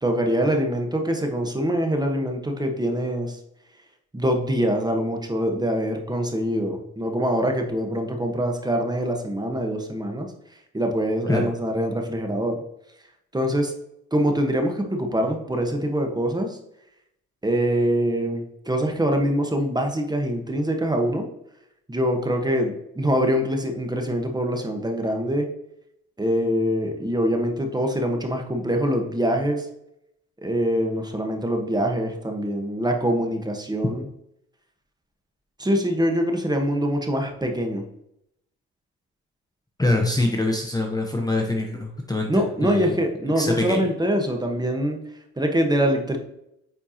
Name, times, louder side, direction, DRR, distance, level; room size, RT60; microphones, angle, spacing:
voice 1, 0.0-3.4 4.1-10.3 10.7-12.6 13.3-13.7 14.1-16.6 17.4-21.3 21.9-25.5 26.2-29.7 30.4-34.0 35.6-37.8 42.3-45.0 45.4-46.2, equal, 15° right, 3 dB, 1.3 m, -24 dB
voice 2, 39.8-43.0 43.4-43.9, left 2 dB, 10° left, 1 dB, 0.9 m, -24 dB
8.8 x 4.5 x 2.9 m, 0.79 s
cardioid pair, 90°, 30 cm